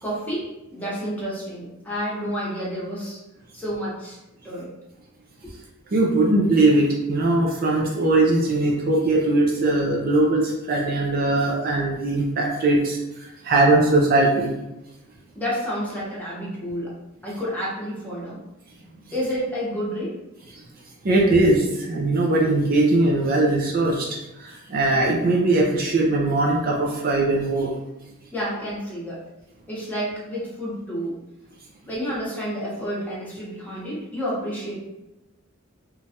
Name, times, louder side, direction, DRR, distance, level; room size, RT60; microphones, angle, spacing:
voice 1, 0.0-3.2 3.5-4.2 4.4-4.7 5.4-5.5 15.3-16.9 17.2-18.4 19.1-20.1 28.3-29.2 29.7-31.2 31.8-34.8, equal, 10° left, -7 dB, 0.9 m, -30 dB
voice 2, 5.9-14.5 21.0-24.1 24.4-27.8, right 2 dB, 45° right, -2 dB, 0.4 m, -20 dB
3.1 x 2.3 x 2.7 m, 0.97 s
head